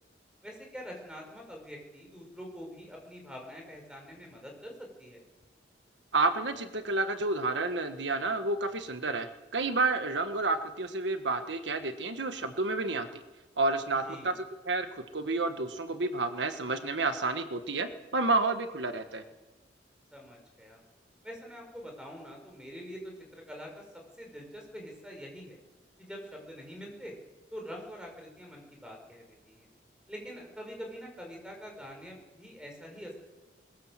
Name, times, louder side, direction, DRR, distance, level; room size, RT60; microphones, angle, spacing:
voice 1, 0.4-5.2 14.0-14.3 20.1-20.8 21.2-23.8 24.2-25.6 26.0-27.2 27.5-29.7 30.1-33.2, equal, 5° right, 1 dB, 5.9 m, -45 dB
voice 2, 6.1-9.3 9.5-13.1 13.6-14.3 14.6-19.2, right 3 dB, 80° right, 8 dB, 1.5 m, -30 dB
21.5 x 20.5 x 7.6 m, 1.1 s
head